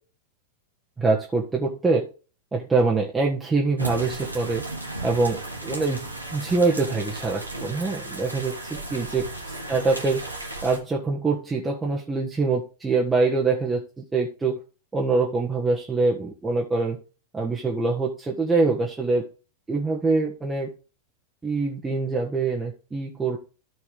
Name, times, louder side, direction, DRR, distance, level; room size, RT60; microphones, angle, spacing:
voice 1, 1.0-2.1 2.5-4.6 5.0-8.6 8.9-9.3 9.7-14.6 14.9-17.0 17.3-19.3 19.7-20.7 21.4-23.4, right 3 dB, 15° right, -3 dB, 1.6 m, -24 dB
sound 1, 3.8-10.8, right 1 dB, 85° right, 1.7 m, -35 dB
13.5 x 4.6 x 3.6 m, 0.33 s
figure-of-eight pair, 90°, 0 cm